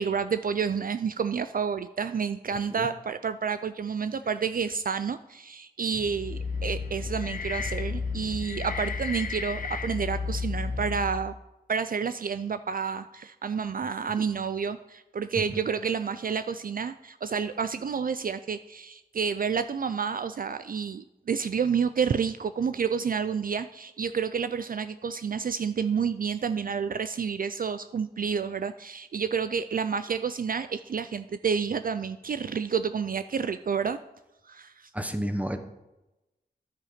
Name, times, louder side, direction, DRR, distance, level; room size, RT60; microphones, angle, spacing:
voice 1, 0.0-11.3 11.7-34.0 34.5-34.9, right 6 dB, 55° right, 11 dB, 0.4 m, -29 dB
sound 1, 6.0-11.4, left 4 dB, 55° left, 0.8 m, -32 dB
voice 2, 34.9-35.6, equal, 10° right, 8 dB, 1.0 m, -30 dB
10.5 x 7.6 x 5.0 m, 0.98 s
wide cardioid pair, 85°, 17 cm